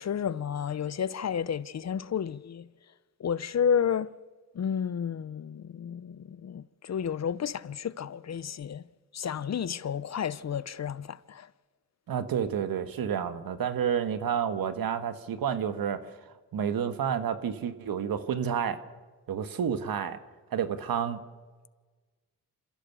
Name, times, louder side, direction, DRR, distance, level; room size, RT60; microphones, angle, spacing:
voice 1, 0.0-2.7 3.2-4.1 4.5-8.8 9.1-11.5, left 8 dB, 45° left, 0.7 m, -31 dB
voice 2, 12.1-16.0 16.5-18.8 19.3-20.2 20.5-21.2, right 8 dB, 70° right, 1.6 m, -30 dB
27.5 x 15.5 x 7.0 m
cardioid pair, 70°, 36 cm